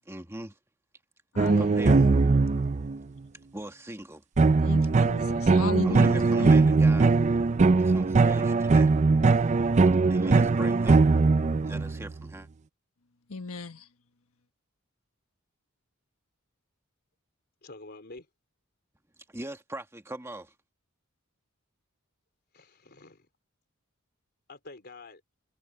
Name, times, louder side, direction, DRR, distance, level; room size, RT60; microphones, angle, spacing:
voice 1, 0.0-0.5 1.6-2.0 3.5-4.2 5.8-7.1 7.7-8.9 10.1-11.0 11.6-12.5 19.3-20.5, right 1 dB, 10° right, 1.6 m, -40 dB
voice 2, 1.3-2.1 4.6-6.8 13.3-13.9, left 3 dB, 80° left, 1.4 m, -36 dB
sound 1, 1.4-3.0 4.4-12.1, right 3 dB, 30° right, 0.4 m, -21 dB
voice 3, 17.6-18.3 22.5-23.3 24.5-25.2, left 2 dB, 50° left, 3.8 m, -47 dB
head